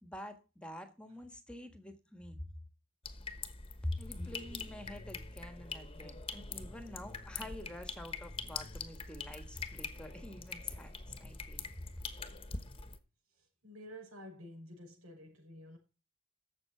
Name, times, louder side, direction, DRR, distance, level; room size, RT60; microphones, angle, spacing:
voice 1, 0.0-2.4 3.8-11.6, left 1 dB, 5° left, 1.5 m, -46 dB
sound 1, 3.0-13.0, left 4 dB, 25° left, 1.2 m, -44 dB
voice 2, 13.3-15.8, equal, 90° right, 6.2 m, -51 dB
12.5 x 7.7 x 4.5 m
head